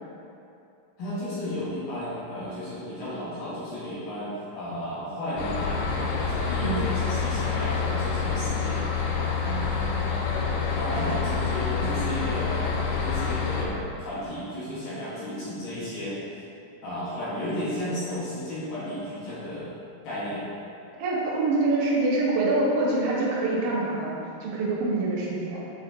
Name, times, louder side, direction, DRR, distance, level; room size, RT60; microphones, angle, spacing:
voice 1, 1.0-8.8 10.7-16.2 16.8-19.7 20.0-20.5, left 1 dB, 65° left, -10 dB, 2.2 m, -33 dB
sound 1, 5.4-13.7, left 5 dB, 85° left, 2.8 m, -27 dB
voice 2, 6.6-6.9 9.4-10.0 11.0-11.1 11.8-12.1 21.0-25.6, right 2 dB, 75° right, -4 dB, 3.3 m, -26 dB
8.1 x 3.9 x 4.2 m, 2.7 s
omnidirectional pair, 5.4 m